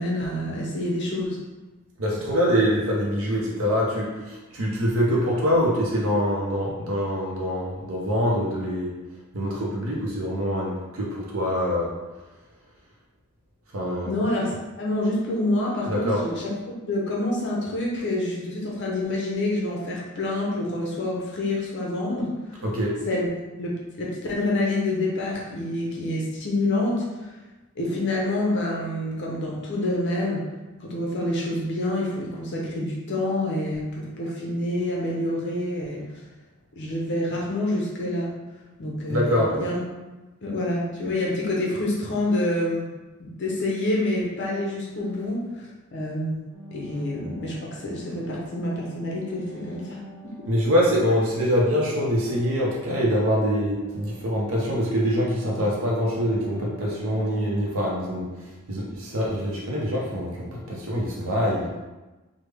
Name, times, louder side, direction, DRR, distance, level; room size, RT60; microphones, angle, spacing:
voice 1, 0.0-1.4 14.1-14.5 14.8-16.5 16.9-22.3 23.1-23.3 23.6-27.3 27.8-30.5 30.8-36.1 36.8-38.3 38.8-39.8 40.4-50.0, left 1 dB, 55° left, -3 dB, 0.6 m, -27 dB
voice 2, 2.0-8.9 9.3-12.0 13.7-14.1 15.9-16.2 22.6-23.0 39.1-39.6 50.5-61.7, equal, 65° right, -3 dB, 0.6 m, -24 dB
sound 1, 46.5-57.6, right 3 dB, 5° left, 0.6 m, -46 dB
3.3 x 2.0 x 3.3 m, 1.1 s
head